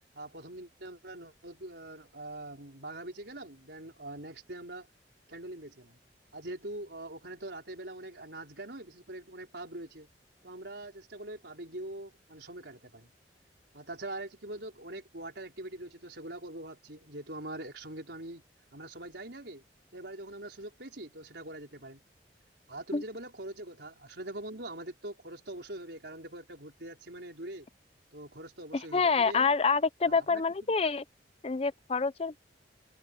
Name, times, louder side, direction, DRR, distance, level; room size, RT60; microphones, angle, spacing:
voice 1, 0.1-4.9 5.3-6.0 6.3-10.1 10.4-13.1 13.7-18.4 18.7-19.6 19.9-22.0 22.7-27.7 28.1-29.5 30.0-30.7, right 1 dB, 70° right, 4.8 m, -43 dB
voice 2, 28.9-31.0 31.4-32.4, left 4 dB, 35° left, 0.6 m, -27 dB
open air
head